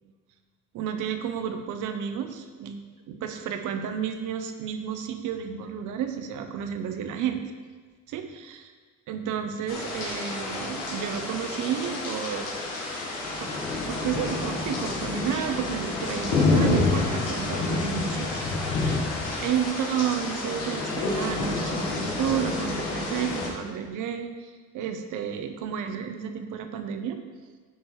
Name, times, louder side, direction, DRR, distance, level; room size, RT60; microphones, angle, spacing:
voice 1, 0.7-2.8 3.1-7.4 8.1-8.6 9.1-12.5 13.4-13.5 13.9-27.2, right 8 dB, 90° right, 7 dB, 0.8 m, -31 dB
sound 1, 9.7-23.5, left 3 dB, 85° left, 1.6 m, -28 dB
9.1 x 4.6 x 4.6 m, 1.5 s
cardioid pair, 90°, 30 cm